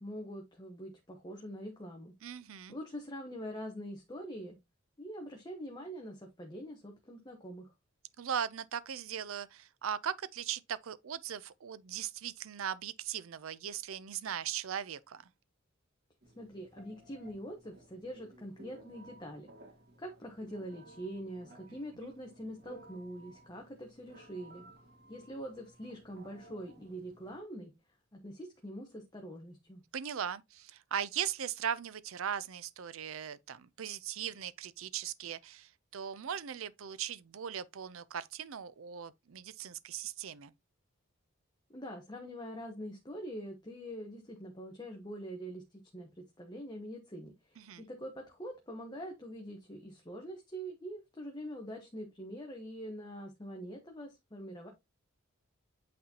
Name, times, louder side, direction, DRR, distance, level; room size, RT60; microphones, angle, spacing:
voice 1, 0.0-2.1 2.7-4.6 5.0-7.7 16.4-19.5 20.0-24.6 25.1-27.7 28.1-29.8 41.7-54.7, equal, 20° left, 1.0 m, -44 dB
voice 2, 2.2-2.7 8.2-15.2 22.0-22.1 29.9-40.5 47.6-47.8, right 8 dB, 70° right, 0.5 m, -39 dB
Telephone, 16.2-27.4, right 1 dB, 50° right, 1.9 m, -58 dB
8.4 x 4.2 x 2.8 m
head